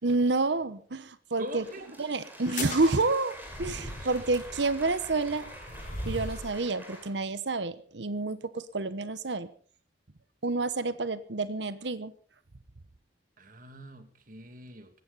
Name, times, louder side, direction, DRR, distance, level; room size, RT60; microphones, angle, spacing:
voice 1, 0.0-1.6 2.0-5.5 6.1-9.5 10.4-12.1, right 3 dB, 75° right, 14 dB, 1.0 m, -29 dB
sound 1, 1.3-7.1, equal, 10° right, 5.0 m, -47 dB
voice 2, 1.4-2.0 3.9-4.1 13.4-15.0, right 1 dB, 50° right, 8 dB, 2.4 m, -43 dB
sound 2, 2.4-6.6, left 2 dB, 45° left, 5.2 m, -39 dB
20.0 x 16.0 x 4.1 m, 0.43 s
head